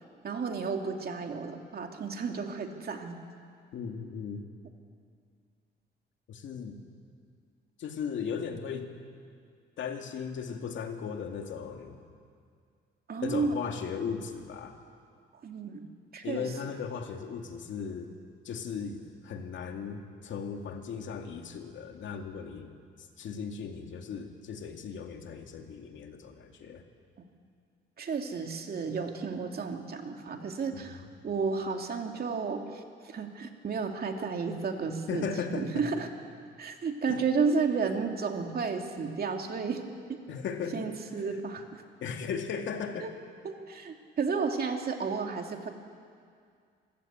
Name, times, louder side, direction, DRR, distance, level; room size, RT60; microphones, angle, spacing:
voice 1, 0.2-3.2 13.1-13.6 15.4-15.9 16.1-16.5 28.0-36.1 36.6-39.8 40.1-40.2 40.7-41.8 43.0-43.1 43.4-45.7, right 5 dB, 50° right, 3 dB, 2.6 m, -32 dB
voice 2, 3.7-4.4 6.3-6.8 7.8-8.9 9.8-12.0 13.2-14.8 16.2-18.1 18.4-22.7 23.2-26.8 30.7-31.0 35.1-35.9 37.1-37.2 40.3-40.9 41.3-41.4 42.0-43.1, left 6 dB, 70° left, 4 dB, 2.3 m, -37 dB
25.5 x 15.5 x 8.8 m, 2.2 s
cardioid pair, 90°, 20 cm